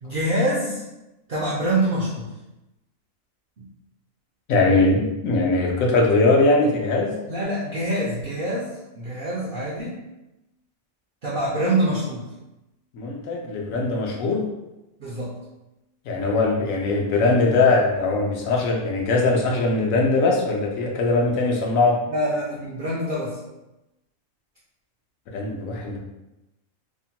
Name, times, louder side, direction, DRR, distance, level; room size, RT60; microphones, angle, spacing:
voice 1, 0.0-0.8 1.3-2.3 3.6-3.7 7.3-8.7 9.0-10.0 11.2-12.3 15.0-15.3 22.1-23.4, right 1 dB, 65° right, -6 dB, 0.5 m, -25 dB
voice 2, 4.5-7.1 12.9-14.4 16.1-22.0 25.3-26.0, left 3 dB, 80° left, 0 dB, 1.0 m, -21 dB
2.9 x 2.1 x 2.8 m, 0.97 s
omnidirectional pair, 1.4 m